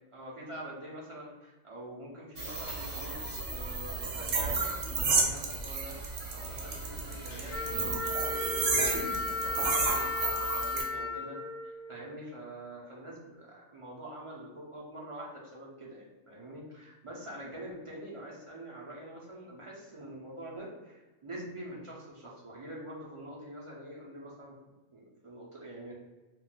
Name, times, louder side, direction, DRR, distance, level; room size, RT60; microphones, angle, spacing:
voice 1, 0.1-6.0 6.3-24.5 24.9-26.0, right 1 dB, 45° right, -5 dB, 0.4 m, -45 dB
sound 1, 2.3-7.8, left 1 dB, 70° left, 0.9 m, -45 dB
sound 2, 2.4-10.8, right 4 dB, 70° right, 0.9 m, -32 dB
Wind instrument woodwind instrument, 7.5-12.3, left 3 dB, 40° left, 0.4 m, -35 dB
2.3 x 2.1 x 3.8 m, 1.2 s
omnidirectional pair, 1.3 m